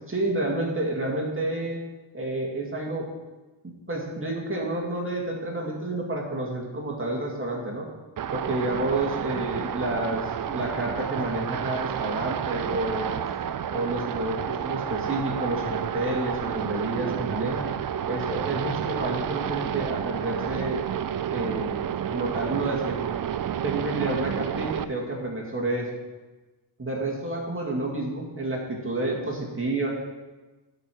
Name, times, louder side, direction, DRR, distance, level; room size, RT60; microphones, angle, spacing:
voice 1, 0.1-1.8 2.1-3.0 3.9-7.9 8.3-13.1 13.7-17.7 18.1-20.8 21.3-21.8 22.1-23.0 23.6-25.9 26.8-29.9, right 2 dB, 30° right, -3 dB, 2.3 m, -29 dB
sound 1, 8.2-24.8, right 9 dB, 50° right, 0.5 m, -30 dB
10.5 x 5.0 x 4.6 m, 1.2 s
cardioid pair, 55°, 44 cm